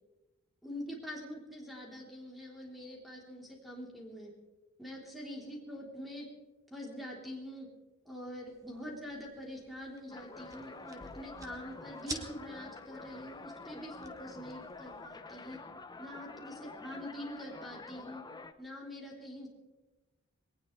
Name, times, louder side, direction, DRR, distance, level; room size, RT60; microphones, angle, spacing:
voice 1, 0.6-4.3 4.8-6.3 6.7-7.7 8.1-15.6 16.0-18.2 18.6-19.5, equal, ahead, -3 dB, 3.7 m, -45 dB
sound 1, 8.5-15.2, right 2 dB, 15° right, 1.2 m, -50 dB
sound 2, 10.1-18.5, left 3 dB, 20° left, 0.6 m, -48 dB
21.5 x 18.5 x 3.4 m, 1.1 s
head